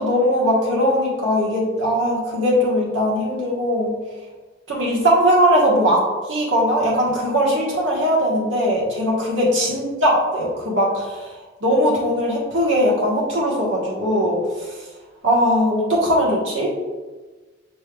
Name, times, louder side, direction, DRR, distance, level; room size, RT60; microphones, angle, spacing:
voice 1, 0.0-3.9 4.7-6.0 6.3-11.3 11.6-14.8 15.2-16.7, equal, 70° right, -4 dB, 1.3 m, -20 dB
6.2 x 3.3 x 2.3 m, 1.3 s
head